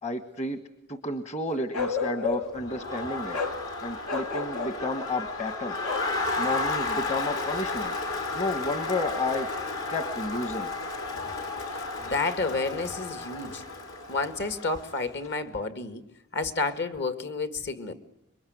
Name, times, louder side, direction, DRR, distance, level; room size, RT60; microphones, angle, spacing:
voice 1, 0.0-0.6 0.9-3.4 3.8-5.8 6.4-7.9 8.3-9.5 9.9-10.7, left 2 dB, 35° left, 9 dB, 1.4 m, -31 dB
Bark, 1.7-2.6 3.3-3.6 4.0-4.8 5.8-6.1, left 5 dB, 90° left, 3.2 m, -30 dB
Crowd, 2.6-15.1, left 3 dB, 70° left, 4.4 m, -33 dB
voice 2, 12.0-13.6 14.1-16.0 16.3-17.9, left 3 dB, 55° left, 10 dB, 1.8 m, -30 dB
27.0 x 23.0 x 9.4 m, 0.82 s
head